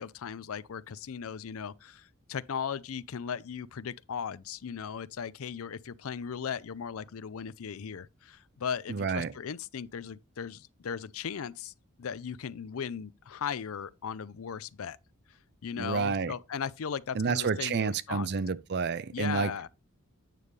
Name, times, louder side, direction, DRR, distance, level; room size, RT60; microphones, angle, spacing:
voice 1, 0.0-11.7 12.0-15.0 15.6-18.3 19.1-19.7, left 7 dB, 70° left, 0.5 m, -37 dB
voice 2, 8.9-9.3 15.7-16.3 17.1-19.5, right 5 dB, 50° right, 0.5 m, -29 dB
9.2 x 6.5 x 3.3 m
head